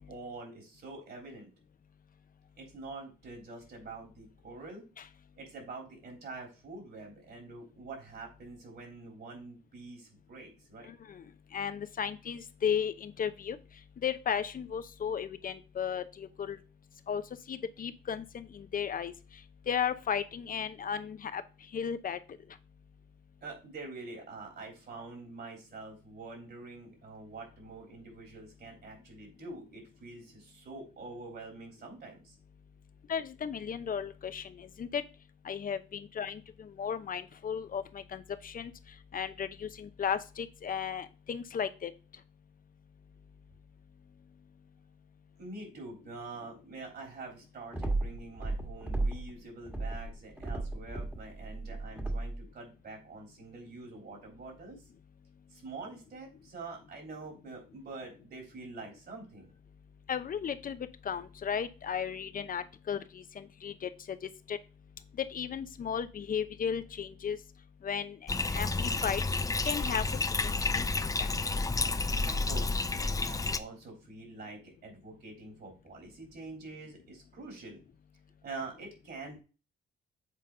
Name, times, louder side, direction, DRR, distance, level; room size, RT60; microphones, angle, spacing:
voice 1, 0.0-1.5 2.6-4.9 5.4-10.9 23.4-32.4 45.4-54.8 55.5-59.5 72.3-77.8 78.4-79.4, right 3 dB, 55° right, 1 dB, 3.7 m, -46 dB
voice 2, 10.9-11.2 11.5-13.6 14.0-16.6 17.1-17.2 17.5-19.1 19.7-21.4 21.7-22.2 33.1-35.0 35.4-38.7 39.1-41.9 60.1-64.2 64.5-64.6 65.2-67.4 67.8-68.2 68.5-69.2 69.6-70.0 70.4-71.3, left 7 dB, 45° left, 11 dB, 0.8 m, -35 dB
sound 1, 47.7-49.3 49.6-52.4, right 2 dB, 10° right, 1.5 m, -34 dB
Bathtub (filling or washing), 68.3-73.6, left 3 dB, 15° left, 0.5 m, -30 dB
7.4 x 4.0 x 3.8 m, 0.33 s
cardioid pair, 90°, 20 cm